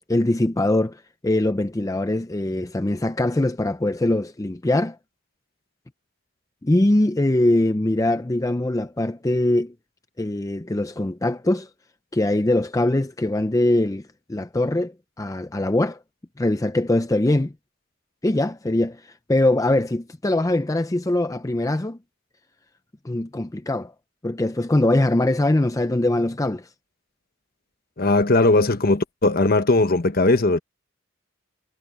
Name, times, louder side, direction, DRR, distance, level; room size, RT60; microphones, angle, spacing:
voice 1, 0.1-5.0 6.6-9.7 10.2-11.7 12.1-16.0 16.4-17.5 18.2-22.0 23.0-23.9 24.2-26.7, left 1 dB, 15° left, 0.5 m, -22 dB
voice 2, 28.0-30.6, left 2 dB, 45° left, 1.2 m, -18 dB
head